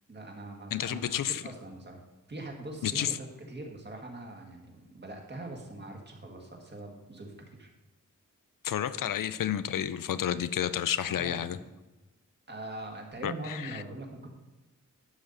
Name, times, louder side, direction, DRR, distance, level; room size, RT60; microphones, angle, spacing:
voice 1, 0.1-2.0 2.3-7.7 11.1-11.7 12.5-14.3, right 2 dB, 35° right, 1 dB, 1.6 m, -42 dB
voice 2, 0.7-1.4 2.8-3.2 8.6-11.6 13.2-13.8, left 10 dB, 85° left, 14 dB, 0.5 m, -31 dB
11.5 x 7.3 x 4.0 m, 1.1 s
wide cardioid pair, 180°, 32 cm